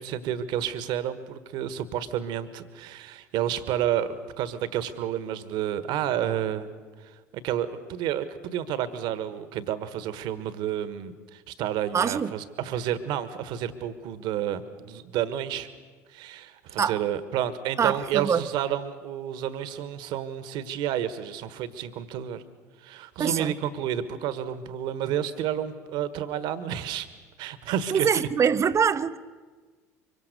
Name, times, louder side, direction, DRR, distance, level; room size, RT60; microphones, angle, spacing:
voice 1, 0.0-6.7 7.4-15.7 16.1-22.4 22.8-27.1 27.4-28.1, right 10 dB, 60° right, 1.4 m, -30 dB
voice 2, 11.9-12.3 16.8-17.0 17.8-18.4 23.2-23.5 27.9-29.2, right 7 dB, 35° right, 0.9 m, -24 dB
24.5 x 24.0 x 6.7 m
figure-of-eight pair, 65°, 9 cm